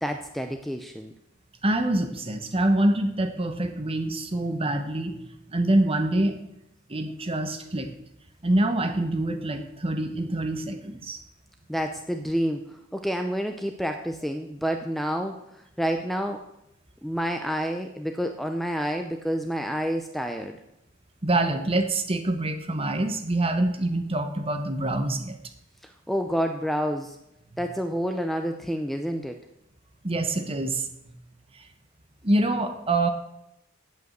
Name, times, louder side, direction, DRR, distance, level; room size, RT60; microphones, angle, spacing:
voice 1, 0.0-1.1 11.7-15.4 15.8-16.4 17.0-20.6 25.8-27.2 27.6-29.4, equal, ahead, 5 dB, 0.5 m, -29 dB
voice 2, 1.6-5.2 5.5-6.4 6.9-7.9 8.4-11.2 21.2-25.3 27.5-27.6 30.0-30.9 32.2-33.1, right 1 dB, 30° right, 6 dB, 1.2 m, -25 dB
8.9 x 8.3 x 7.9 m, 0.84 s
head